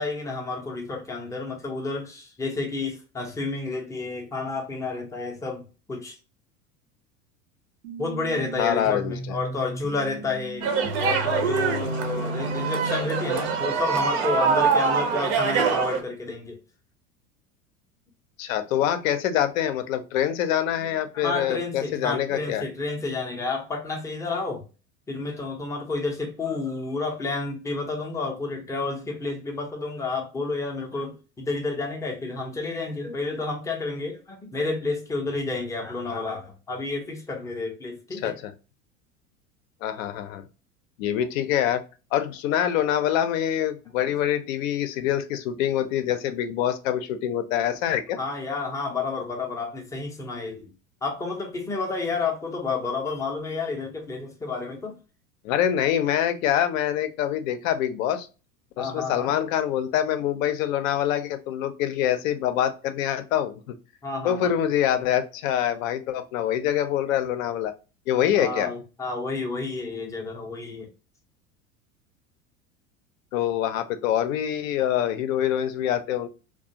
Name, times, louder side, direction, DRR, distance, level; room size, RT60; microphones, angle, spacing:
voice 1, 0.0-6.2 8.0-10.7 11.0-16.6 20.8-24.6 25.1-38.3 44.0-44.1 48.2-50.7 51.0-55.0 58.8-59.3 64.0-64.5 68.4-70.9, left 3 dB, 5° left, 0.5 m, -30 dB
sound 1, 7.8-13.8, right 1 dB, 80° right, 0.9 m, -35 dB
voice 2, 8.6-9.4 18.4-22.7 38.2-38.5 39.8-40.4 41.0-41.8 42.1-48.2 55.4-58.3 58.8-63.7 64.2-67.7 68.1-68.7 73.3-76.3, left 10 dB, 60° left, 0.6 m, -25 dB
sound 2, 10.6-16.0, right 6 dB, 50° right, 0.6 m, -24 dB
2.3 x 2.2 x 2.7 m
figure-of-eight pair, 85°, 45 cm